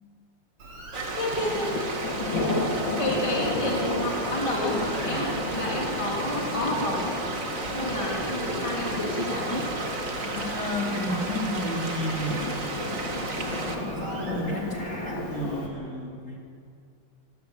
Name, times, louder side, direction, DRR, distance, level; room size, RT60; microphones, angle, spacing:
Bird, 0.6-15.7, right 2 dB, 85° right, 4.4 m, -45 dB
sound 1, 0.9-13.8, right 2 dB, 40° right, 2.6 m, -33 dB
voice 1, 1.2-1.9 3.0-7.1 7.7-9.6, left 1 dB, 15° left, -2 dB, 3.5 m, -30 dB
sound 2, 1.4-15.7, left 2 dB, 60° left, 3.4 m, -33 dB
voice 2, 5.0-5.4 10.3-12.6 13.5-16.4, equal, 35° left, -2 dB, 4.3 m, -32 dB
27.0 x 18.5 x 8.4 m, 2.4 s
omnidirectional pair, 2.4 m